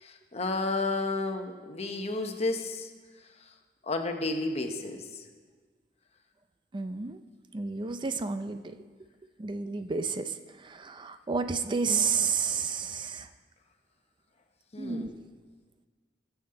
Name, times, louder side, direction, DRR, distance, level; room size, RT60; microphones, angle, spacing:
voice 1, 0.0-2.9 3.9-5.0 14.7-15.1, left 2 dB, 35° left, 4 dB, 1.0 m, -31 dB
voice 2, 6.7-7.2 7.5-8.7 9.4-10.3 10.6-13.3 14.8-15.1, right 5 dB, 25° right, 10 dB, 0.4 m, -30 dB
19.0 x 7.2 x 3.8 m, 1.4 s
head